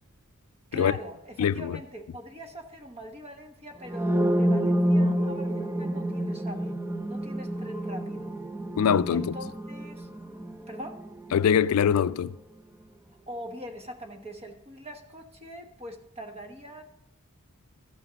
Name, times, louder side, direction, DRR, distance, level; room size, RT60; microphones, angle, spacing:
voice 1, 0.7-6.8 7.1-8.4 9.1-10.1 10.7-11.1 13.3-16.8, equal, 30° right, 1.1 m, -42 dB
voice 2, 1.4-1.8 8.8-9.4 11.3-12.3, left 8 dB, 75° left, 0.3 m, -23 dB
sound 1, 3.8-11.7, equal, 10° right, 0.5 m, -28 dB
13.0 x 5.8 x 5.1 m
head